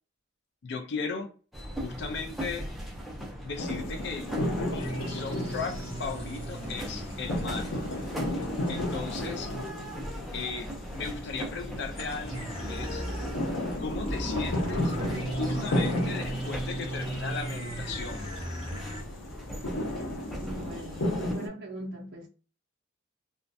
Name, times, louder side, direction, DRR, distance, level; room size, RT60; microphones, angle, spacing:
voice 1, 0.6-1.3 1.8-2.7 3.4-4.3 4.6-7.8 8.7-9.5 10.3-13.1 13.8-14.9 15.4-18.3, left 4 dB, 55° left, 0.4 m, -36 dB
sound 1, 1.5-21.3, equal, ahead, 0.4 m, -39 dB
sound 2, 3.6-21.5, left 1 dB, 85° left, 0.7 m, -34 dB
sound 3, 4.8-9.7 12.0-19.0, right 1 dB, 30° left, 1.0 m, -38 dB
voice 2, 20.3-22.3, right 1 dB, 60° right, 0.5 m, -40 dB
2.3 x 2.1 x 2.5 m
head